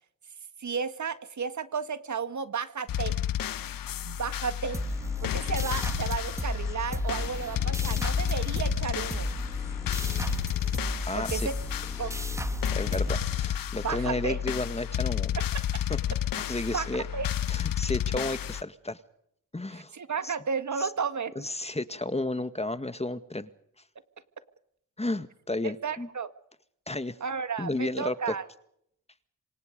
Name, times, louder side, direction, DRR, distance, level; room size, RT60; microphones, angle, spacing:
voice 1, 0.6-3.1 4.0-4.8 5.2-9.3 11.2-11.6 12.0-12.1 13.8-14.4 15.4-15.7 16.7-16.9 17.1-17.3 19.7-21.5 25.6-26.3 27.2-28.5, right 6 dB, 55° right, 11 dB, 1.8 m, -33 dB
sound 1, 2.9-18.6, left 10 dB, 80° left, 1.0 m, -31 dB
sound 2, 4.7-14.0, right 1 dB, 10° right, 2.3 m, -35 dB
voice 2, 11.1-11.5 12.7-15.3 15.9-16.0 16.5-17.1 17.5-19.0 19.5-19.9 20.2-20.3 20.8-20.9 21.4-23.5 25.0-26.1 26.9-27.2 27.6-28.3, left 2 dB, 20° left, 12 dB, 1.8 m, -32 dB
27.5 x 25.5 x 5.3 m, 0.71 s
cardioid pair, 60°, 34 cm